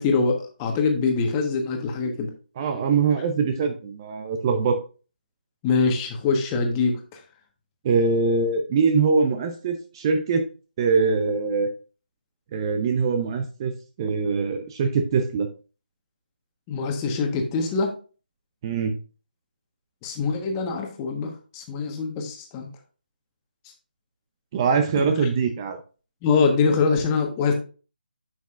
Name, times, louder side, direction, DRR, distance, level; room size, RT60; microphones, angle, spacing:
voice 1, 0.0-2.3 5.6-7.0 16.7-17.9 20.0-22.7 25.0-25.1 26.2-27.5, left 4 dB, 20° left, 3 dB, 1.3 m, -24 dB
voice 2, 2.6-4.8 7.8-10.4 10.8-11.7 12.5-13.7 14.0-15.5 18.6-19.0 24.5-25.8, right 5 dB, 25° right, 7 dB, 0.7 m, -23 dB
9.6 x 6.1 x 2.5 m, 0.35 s
figure-of-eight pair, 155°, 6 cm